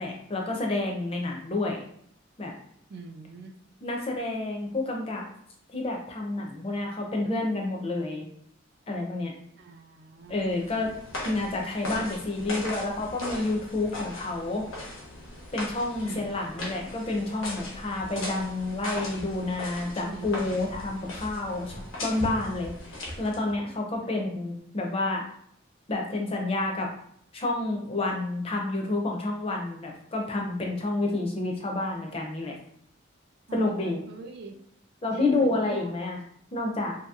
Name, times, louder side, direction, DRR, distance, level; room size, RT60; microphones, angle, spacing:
voice 1, 0.0-1.8 2.4-2.5 3.8-5.3 5.7-8.2 8.9-9.3 10.3-10.9 11.2-14.6 15.5-25.2 25.9-26.9 27.3-32.5 33.5-34.0 35.0-36.2 36.5-36.9, left 2 dB, 30° left, 1 dB, 0.5 m, -29 dB
voice 2, 2.9-3.6 9.5-10.6 16.0-16.3 20.0-20.6 24.0-24.2 33.5-34.6 35.1-35.9, right 3 dB, 55° right, 4 dB, 0.3 m, -43 dB
sound 1, 10.3-23.6, left 1 dB, 90° left, 0.9 m, -39 dB
2.8 x 2.8 x 2.3 m, 0.66 s
head